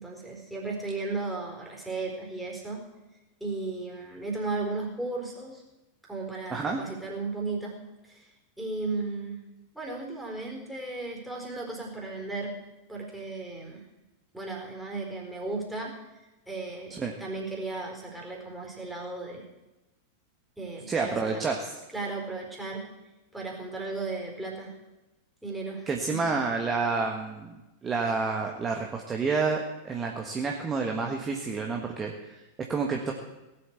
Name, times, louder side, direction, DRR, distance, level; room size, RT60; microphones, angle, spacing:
voice 1, 0.0-2.8 3.4-5.6 6.0-7.8 8.0-8.3 8.6-9.4 9.7-12.5 12.9-13.8 14.3-16.0 16.5-19.4 20.6-21.4 21.9-22.9 23.3-24.7 25.4-26.2, right 3 dB, ahead, -1 dB, 4.3 m, -35 dB
voice 2, 20.9-21.7 25.9-27.6 27.8-32.4 32.7-33.1, right 4 dB, 20° right, 2 dB, 1.6 m, -29 dB
17.5 x 8.0 x 8.1 m, 1.0 s
figure-of-eight pair, 90°, 0 cm